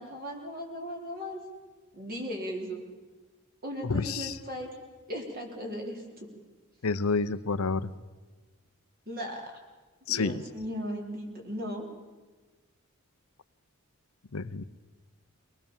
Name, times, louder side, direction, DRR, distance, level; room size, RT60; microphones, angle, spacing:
voice 1, 0.0-1.4 1.9-2.8 3.6-4.7 5.1-6.3 9.1-9.5 10.1-11.9, equal, 45° right, 1 dB, 4.2 m, -37 dB
voice 2, 3.8-4.4 6.8-7.9 10.1-10.4 14.3-14.6, left 4 dB, 85° left, 14 dB, 0.8 m, -29 dB
23.5 x 19.5 x 7.3 m, 1.3 s
head